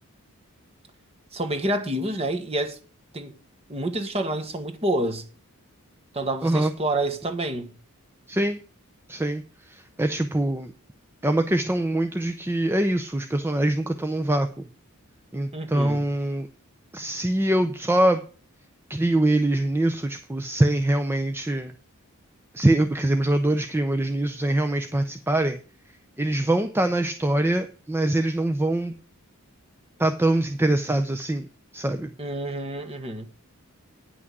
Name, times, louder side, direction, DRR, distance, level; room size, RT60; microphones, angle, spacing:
voice 1, 1.3-2.8 3.1-3.3 3.7-5.2 6.1-7.7 15.5-16.0 32.2-33.3, right 1 dB, 25° right, 1.2 m, -28 dB
voice 2, 6.4-6.7 8.3-8.6 9.1-10.7 11.2-14.5 15.3-16.5 16.9-18.2 18.9-21.7 22.5-25.6 26.2-28.9 30.0-31.5 31.7-32.1, right 1 dB, 10° right, 0.5 m, -23 dB
9.7 x 6.1 x 6.0 m
head